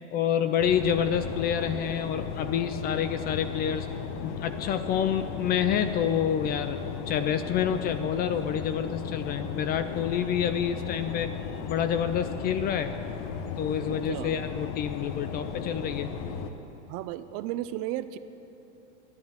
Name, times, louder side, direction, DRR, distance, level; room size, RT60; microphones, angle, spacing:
voice 1, 0.1-3.9 4.2-6.8 7.1-11.3 11.7-12.9 13.6-16.1, left 8 dB, 25° left, 10 dB, 0.4 m, -28 dB
sound 1, 0.6-16.5, left 6 dB, 50° left, 1.0 m, -36 dB
voice 2, 16.9-18.2, right 14 dB, 40° right, 13 dB, 0.5 m, -33 dB
11.5 x 10.5 x 8.0 m, 2.9 s
supercardioid pair, 125°, 37 cm